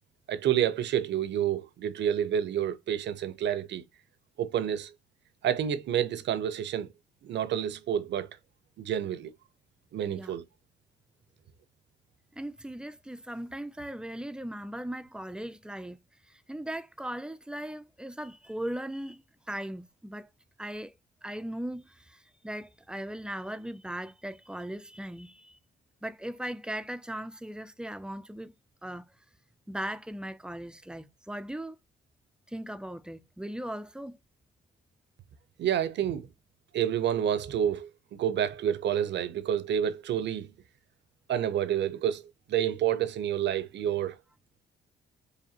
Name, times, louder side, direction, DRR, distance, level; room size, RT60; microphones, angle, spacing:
voice 1, 0.3-3.8 4.4-4.9 5.4-6.9 7.2-8.3 8.8-9.3 9.9-10.4 35.6-36.3 36.7-37.9 38.2-40.5 41.3-42.2 42.5-44.2, right 10 dB, 65° right, 0.6 m, -29 dB
voice 2, 10.0-10.4 12.3-16.0 16.3-20.3 20.6-20.9 21.2-25.6 26.0-28.5 28.8-29.1 29.7-31.8 32.5-34.2, right 1 dB, 5° right, 0.3 m, -38 dB
5.0 x 2.6 x 2.8 m
cardioid pair, 90°, 20 cm